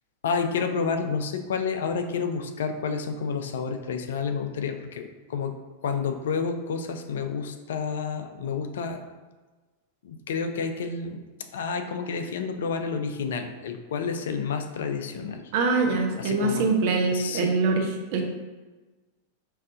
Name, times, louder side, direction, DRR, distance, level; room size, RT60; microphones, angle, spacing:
voice 1, 0.2-9.0 10.0-11.3 11.5-15.4 16.2-16.8 17.1-17.6, left 5 dB, 60° left, 6 dB, 0.3 m, -30 dB
voice 2, 15.5-17.8 18.1-18.2, right 3 dB, 50° right, 2 dB, 0.6 m, -23 dB
5.3 x 2.5 x 2.4 m, 1.3 s
figure-of-eight pair, 90°, 0 cm